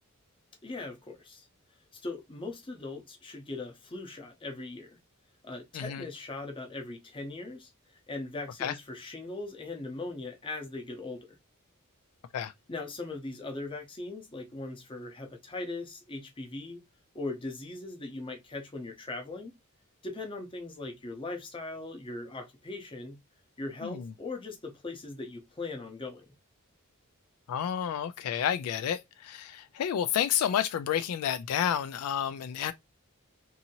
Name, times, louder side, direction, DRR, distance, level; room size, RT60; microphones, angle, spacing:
voice 1, 0.6-1.5 1.9-5.0 5.4-7.7 8.1-11.3 12.7-16.8 17.1-19.6 20.0-23.2 23.6-26.3, left 2 dB, 25° left, 0.7 m, -39 dB
voice 2, 27.5-32.7, left 9 dB, 75° left, 0.3 m, -30 dB
2.7 x 2.7 x 2.7 m
head